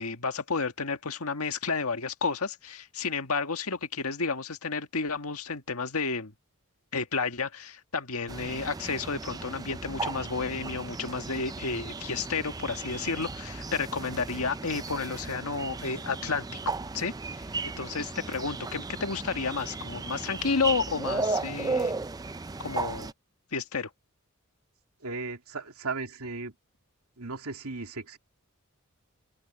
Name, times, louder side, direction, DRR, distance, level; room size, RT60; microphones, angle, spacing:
voice 1, 0.0-6.3 6.9-17.5 17.8-21.9 22.6-23.1 23.5-23.9, left 4 dB, 80° left, 1.7 m, -31 dB
sound 1, 8.3-23.1, right 3 dB, 15° right, 0.4 m, -35 dB
voice 2, 25.0-26.5 27.2-28.2, right 3 dB, 85° right, 2.5 m, -36 dB
head